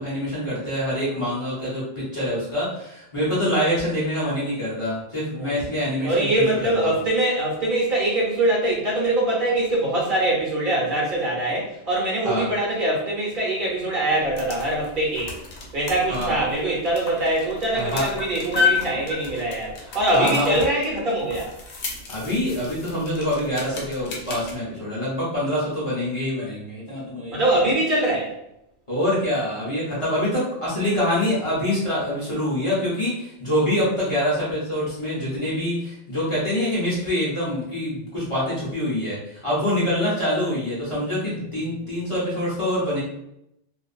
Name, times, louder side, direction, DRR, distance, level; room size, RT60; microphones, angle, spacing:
voice 1, 0.0-6.4 6.8-6.9 12.2-12.5 16.1-16.4 17.7-18.1 19.8-20.6 22.1-27.4 28.9-43.0, left 1 dB, 30° left, -8 dB, 0.8 m, -25 dB
voice 2, 6.0-15.4 15.7-21.5 27.3-28.3, right 1 dB, 50° right, -4 dB, 0.9 m, -23 dB
sound 1, 14.1-24.5, left 5 dB, 85° left, 0.9 m, -32 dB
2.4 x 2.4 x 2.4 m, 0.81 s
omnidirectional pair, 1.1 m